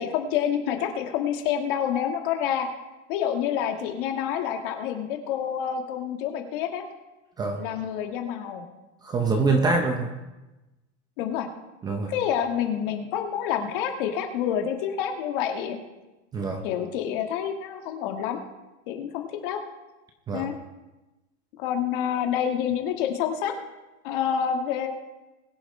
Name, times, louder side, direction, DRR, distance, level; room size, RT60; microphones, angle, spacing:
voice 1, 0.0-2.7 3.1-6.9 7.6-8.6 11.2-11.5 12.1-15.8 16.6-18.4 18.9-19.6 20.3-20.5 21.6-23.5 24.0-24.9, left 9 dB, 45° left, 4 dB, 1.6 m, -28 dB
voice 2, 9.0-10.1 11.8-12.1 16.3-16.6 20.3-20.5, right 3 dB, 10° right, 4 dB, 0.6 m, -24 dB
21.5 x 10.0 x 3.2 m, 1.0 s
supercardioid pair, 165°, 35 cm